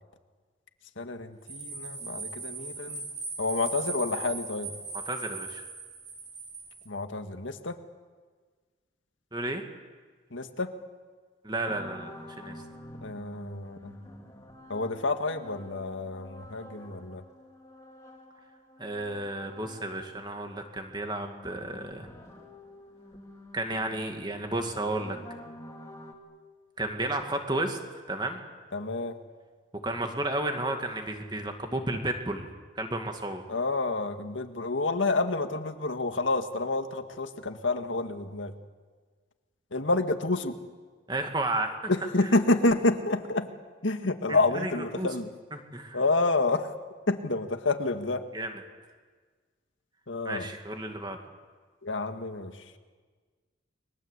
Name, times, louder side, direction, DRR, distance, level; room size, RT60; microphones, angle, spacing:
voice 1, 1.0-3.1 3.4-4.7 6.9-7.8 10.3-10.7 13.0-14.0 14.7-17.2 28.7-29.1 33.5-38.5 39.7-40.6 41.9-43.5 43.8-45.3 45.9-46.7 47.1-48.2 50.1-50.5 51.8-52.6, left 2 dB, 85° left, 6 dB, 1.9 m, -29 dB
sound 1, 1.5-6.8, right 4 dB, 40° right, 6.1 m, -38 dB
voice 2, 5.1-5.6 9.3-9.6 11.4-12.6 18.8-22.1 23.5-25.2 26.8-28.4 29.8-32.5 32.8-33.4 41.1-41.9 44.3-44.7 45.0-45.1 45.5-46.0 48.3-48.6 50.2-51.2, right 2 dB, 20° right, 4 dB, 2.3 m, -32 dB
sound 2, 11.7-20.2 20.5-26.1, left 1 dB, 15° left, 3.3 m, -49 dB
30.0 x 22.0 x 8.3 m, 1.5 s
head